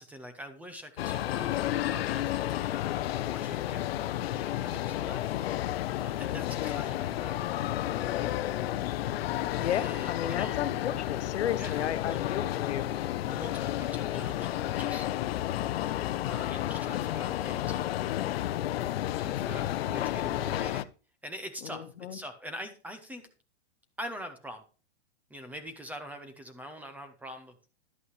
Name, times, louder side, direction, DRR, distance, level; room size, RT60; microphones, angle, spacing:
voice 1, 0.0-3.8 4.3-5.2 5.5-7.4 8.0-8.4 9.6-10.6 11.5-12.5 13.2-15.1 15.9-18.0 19.2-20.8 21.2-21.8 22.1-23.3 24.0-24.6 25.3-27.5, equal, 5° right, 8 dB, 0.6 m, -44 dB
sound 1, 1.0-20.8, left 13 dB, 65° left, 0.6 m, -31 dB
voice 2, 6.6-7.0 9.6-12.9 21.6-22.2, left 10 dB, 85° left, 12 dB, 1.1 m, -34 dB
11.5 x 8.2 x 3.2 m, 0.35 s
supercardioid pair, 160°, 33 cm